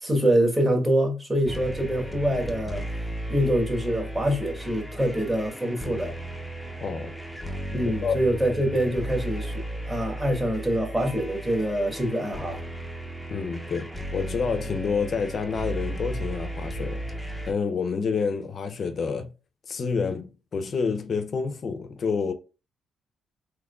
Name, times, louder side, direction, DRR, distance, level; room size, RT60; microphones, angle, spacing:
voice 1, 0.0-2.8 3.3-6.1 7.7-12.6, right 1 dB, 20° right, 1.4 m, -25 dB
sound 1, 1.5-17.5, right 1 dB, ahead, 0.6 m, -35 dB
voice 2, 6.8-7.1 8.0-8.2 13.3-17.2 17.4-19.3 19.7-22.3, left 5 dB, 50° left, 0.5 m, -28 dB
3.6 x 3.1 x 2.3 m
cardioid pair, 90°, 0 cm